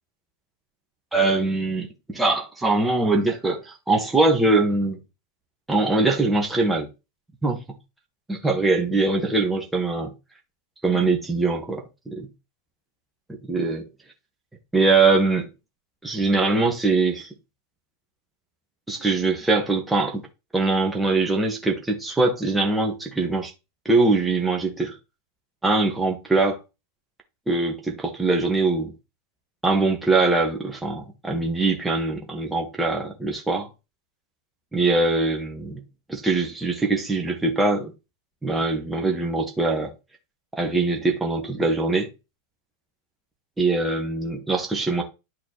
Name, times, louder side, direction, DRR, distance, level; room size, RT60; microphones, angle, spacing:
voice 1, 1.1-5.0 5.7-6.9 7.4-7.6 8.3-10.1 10.8-12.3 13.3-13.9 14.7-15.5 16.0-17.3 18.9-20.2 20.5-23.5 23.9-25.0 25.6-26.6 27.5-28.9 29.6-33.7 34.7-35.8 36.1-37.9 38.4-39.9 40.6-42.1 43.6-45.0, right 3 dB, 10° right, 1.7 m, -22 dB
10.5 x 6.7 x 3.2 m
figure-of-eight pair, 90°, 0 cm